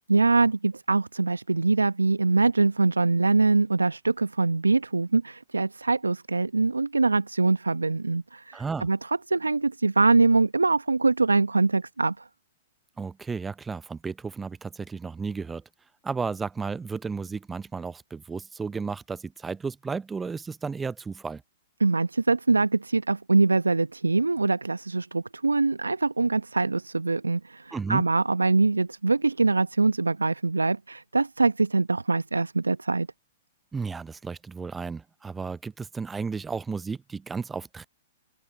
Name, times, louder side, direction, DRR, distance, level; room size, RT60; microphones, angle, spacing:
voice 1, 0.1-12.2 21.8-33.1, right 3 dB, 85° right, 0.9 m, -23 dB
voice 2, 8.5-8.9 13.0-15.6 16.0-21.4 27.7-28.0 33.7-37.9, right 5 dB, 10° right, 0.6 m, -33 dB
open air
figure-of-eight pair, 110°, 0 cm